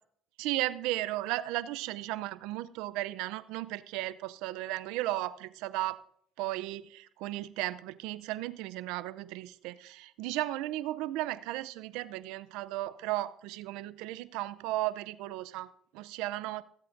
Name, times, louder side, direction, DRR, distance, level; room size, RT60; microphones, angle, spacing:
voice 1, 0.4-6.0 6.4-16.6, right 16 dB, 80° right, 17 dB, 0.5 m, -35 dB
25.0 x 8.4 x 2.6 m, 0.67 s
supercardioid pair, 85°, 0 cm